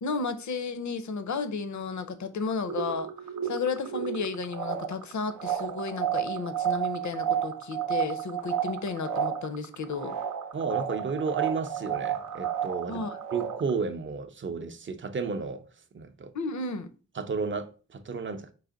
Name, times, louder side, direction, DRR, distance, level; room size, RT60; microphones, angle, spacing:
voice 1, 0.0-3.1 3.4-10.1 12.9-13.2 16.3-16.9, left 4 dB, 65° left, 0.6 m, -33 dB
sound 1, 2.4-13.7, right 9 dB, 85° right, 0.6 m, -32 dB
voice 2, 10.5-13.0 13.3-15.6 15.9-16.3 17.1-18.5, right 5 dB, 40° right, 0.5 m, -32 dB
4.8 x 2.8 x 3.8 m
wide cardioid pair, 125°, 31 cm